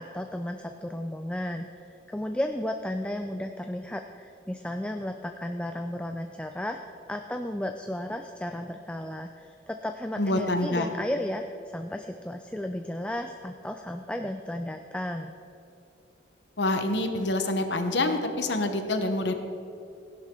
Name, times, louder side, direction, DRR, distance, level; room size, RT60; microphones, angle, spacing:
voice 1, 0.0-6.8 7.1-15.3, left 1 dB, 5° left, 5 dB, 0.4 m, -34 dB
voice 2, 10.2-10.9 16.6-19.3, left 2 dB, 75° left, 6 dB, 1.1 m, -26 dB
16.0 x 11.0 x 3.8 m, 2.7 s
head